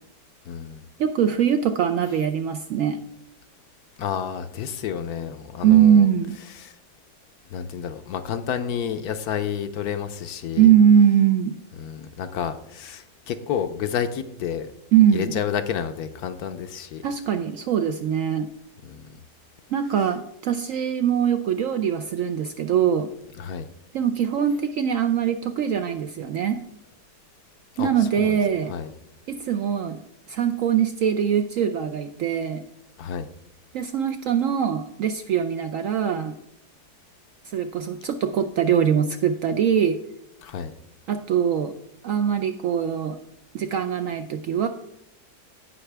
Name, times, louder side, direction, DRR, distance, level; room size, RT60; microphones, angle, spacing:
voice 1, 0.4-0.8 4.0-6.1 6.5-6.8 7.5-10.7 11.8-14.7 15.1-17.0 18.8-19.2 23.4-23.7 27.8-27.9 28.2-28.4 28.7-28.9 33.0-33.3 40.4-40.7, left 8 dB, 70° left, 9 dB, 1.1 m, -30 dB
voice 2, 1.0-3.0 5.6-6.4 10.6-11.6 14.9-15.4 17.0-18.5 19.7-23.1 23.9-26.6 27.8-28.7 29.3-30.0 30.3-32.6 33.7-36.3 37.5-40.0 41.1-41.7 42.0-43.2 43.5-44.7, right 8 dB, 70° right, 8 dB, 0.8 m, -22 dB
16.5 x 5.7 x 3.3 m, 0.78 s
omnidirectional pair, 1.8 m